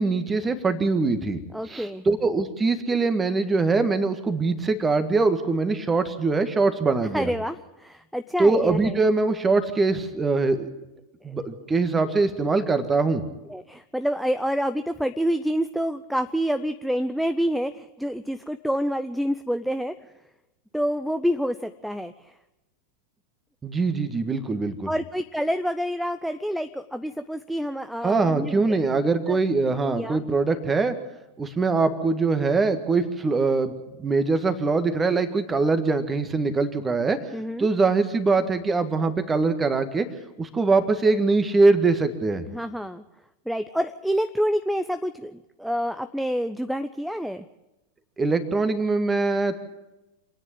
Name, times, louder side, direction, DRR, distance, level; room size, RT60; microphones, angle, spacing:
voice 1, 0.0-1.4 1.7-7.3 8.4-10.7 11.2-13.2 23.6-24.9 28.0-30.9 31.4-33.7 34.0-37.2 37.6-40.1 40.4-42.4 48.2-49.6, right 3 dB, 15° right, 10 dB, 1.8 m, -22 dB
voice 2, 1.5-2.0 7.1-9.0 11.3-11.4 13.5-19.9 20.7-22.3 24.9-28.8 29.3-29.4 29.9-30.2 37.3-37.7 42.5-43.0 43.5-47.4, equal, ahead, 11 dB, 0.6 m, -28 dB
27.0 x 10.0 x 9.7 m, 1.0 s
figure-of-eight pair, 90°, 0 cm